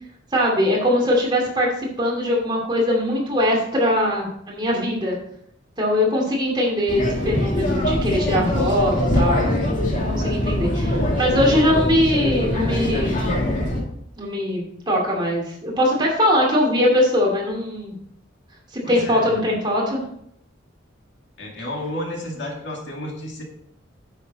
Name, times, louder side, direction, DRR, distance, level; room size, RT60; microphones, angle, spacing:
voice 1, 0.3-5.1 5.8-9.5 9.8-13.4 14.2-17.9 18.7-20.0, left 1 dB, 25° right, -2 dB, 2.6 m, -21 dB
sound 1, 6.9-13.8, left 1 dB, 40° left, 2.3 m, -22 dB
voice 2, 18.8-19.5 21.4-23.4, left 1 dB, 60° left, 0 dB, 2.2 m, -32 dB
9.5 x 6.9 x 4.1 m, 0.71 s
head